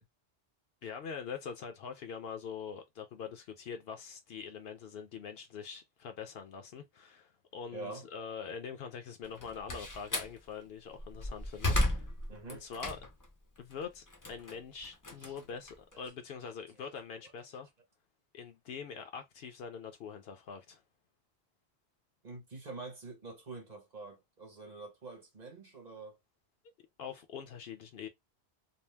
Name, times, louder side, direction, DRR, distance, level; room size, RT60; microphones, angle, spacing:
voice 1, 0.8-12.1 12.5-13.0 13.6-17.7 18.3-20.8 27.0-28.1, left 6 dB, 70° left, 0.8 m, -44 dB
voice 2, 7.7-8.1 12.3-12.6 15.2-15.3 15.9-16.0 16.4-16.5 17.2-17.3 22.2-26.2, right 3 dB, 40° right, 1.0 m, -46 dB
Slam, 9.2-10.4 10.9-13.3 13.7-16.1, left 1 dB, 30° left, 0.4 m, -34 dB
2.7 x 2.0 x 3.2 m
omnidirectional pair, 1.1 m